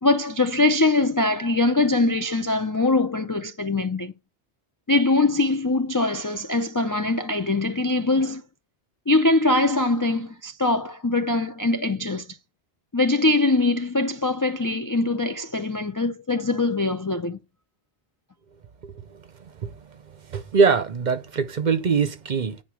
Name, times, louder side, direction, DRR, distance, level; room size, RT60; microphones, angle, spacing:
voice 1, 0.0-4.1 4.9-8.4 9.1-12.3 12.9-17.4, left 2 dB, 35° left, 0.3 m, -22 dB
voice 2, 19.4-22.6, right 5 dB, 50° right, 0.7 m, -23 dB
9.4 x 3.8 x 6.1 m
omnidirectional pair, 1.1 m